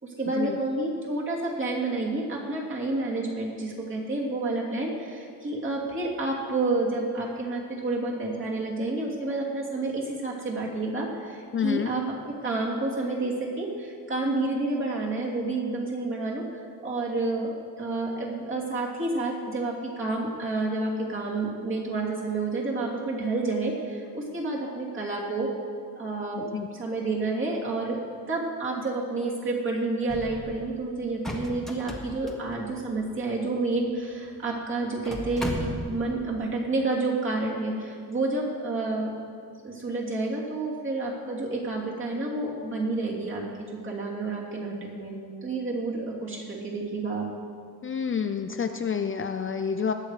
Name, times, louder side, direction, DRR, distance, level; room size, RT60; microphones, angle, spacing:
voice 1, 0.0-12.0 12.4-16.5 16.8-25.5 25.9-26.5 26.7-28.0 28.3-39.1 39.6-45.1 45.4-47.2, right 2 dB, 35° right, -3 dB, 2.9 m, -29 dB
voice 2, 11.5-11.9 26.3-26.7 47.8-49.9, left 6 dB, 35° left, 7 dB, 0.5 m, -28 dB
sound 1, 30.1-30.7 31.0-33.1 34.0-34.1 34.3-34.4 34.9-36.1, equal, ahead, 1.6 m, -35 dB
20.0 x 8.5 x 4.9 m, 2.2 s
cardioid pair, 140°, 37 cm